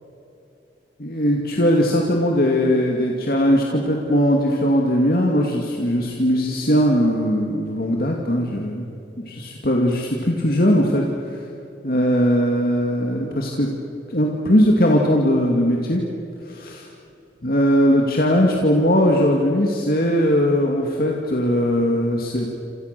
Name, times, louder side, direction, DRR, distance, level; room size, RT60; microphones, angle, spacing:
voice 1, 1.0-8.9 9.2-11.5 11.8-13.7 14.1-16.0 16.4-16.9 17.4-22.5, equal, 50° left, 0 dB, 2.4 m, -19 dB
29.0 x 27.0 x 6.8 m, 2.8 s
head